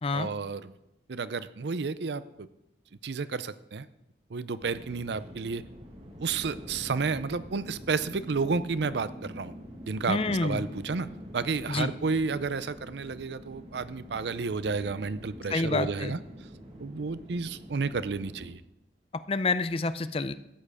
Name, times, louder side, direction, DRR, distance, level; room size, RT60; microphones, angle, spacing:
voice 1, 0.1-0.7 1.1-2.5 3.0-3.9 4.3-5.6 6.2-9.5 9.9-11.1 11.3-16.2 16.8-18.6, right 4 dB, 75° right, 15 dB, 0.5 m, -31 dB
sound 1, 4.6-18.5, equal, 35° right, 1.8 m, -45 dB
voice 2, 10.1-10.6 11.7-11.9 15.5-16.1 19.1-20.3, left 3 dB, 30° left, 13 dB, 0.5 m, -28 dB
13.5 x 9.0 x 4.9 m, 0.85 s
head